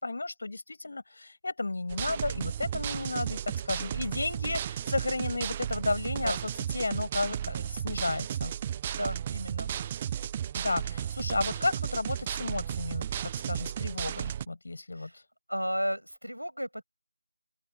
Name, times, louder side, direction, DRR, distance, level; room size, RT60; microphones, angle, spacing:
voice 1, 0.0-8.5 10.6-15.1, left 2 dB, 45° left, 6.4 m, -33 dB
sound 1, 1.9-14.5, right 10 dB, 15° right, 0.5 m, -34 dB
voice 2, 9.0-9.7 14.9-15.2 15.5-16.8, equal, 90° right, 7.3 m, -33 dB
open air
figure-of-eight pair, 165°, 0 cm